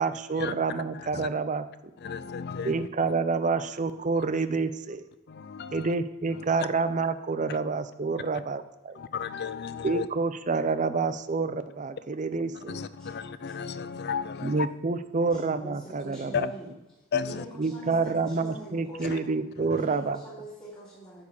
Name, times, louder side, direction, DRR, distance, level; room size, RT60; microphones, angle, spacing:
voice 1, 0.0-1.6 2.6-5.0 5.7-9.0 9.8-12.8 14.4-16.5 17.6-20.2, right 4 dB, 35° right, 0.6 m, -28 dB
voice 2, 0.9-1.3 2.0-2.9 4.2-4.3 5.3-5.9 6.3-6.4 7.5-7.6 8.9-10.1 12.5-14.7 16.3-16.5 17.1-17.4 19.0-19.2 19.7-19.8, left 6 dB, 50° left, 0.5 m, -34 dB
voice 3, 12.6-13.6 15.2-16.7 17.2-19.4 19.7-21.2, right 1 dB, 20° left, 3.4 m, -45 dB
10.5 x 5.0 x 7.1 m
head